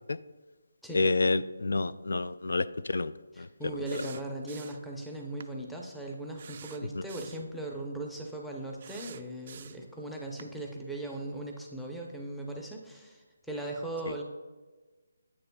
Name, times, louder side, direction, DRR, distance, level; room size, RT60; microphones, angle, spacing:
voice 1, 0.9-3.1 3.4-3.7 14.1-14.2, left 3 dB, 75° left, 15 dB, 0.3 m, -29 dB
voice 2, 3.3-14.2, right 2 dB, ahead, -2 dB, 0.6 m, -38 dB
sound 1, 3.9-4.9 5.4-5.5 6.4-7.5 8.8-9.9 10.4-10.5, right 7 dB, 40° right, 0.3 m, -48 dB
9.5 x 8.6 x 2.3 m, 1.3 s
figure-of-eight pair, 165°, 0 cm